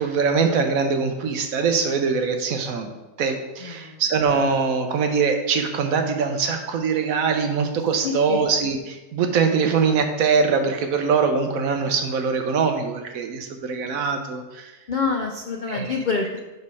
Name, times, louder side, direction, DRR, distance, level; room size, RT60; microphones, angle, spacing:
voice 1, 0.0-2.9 3.2-14.7 15.7-15.9, right 5 dB, 70° right, 5 dB, 1.2 m, -22 dB
voice 2, 3.6-4.0 8.0-8.4 14.9-16.4, left 4 dB, 65° left, 2 dB, 0.4 m, -27 dB
5.7 x 5.3 x 4.7 m, 1.1 s
omnidirectional pair, 1.6 m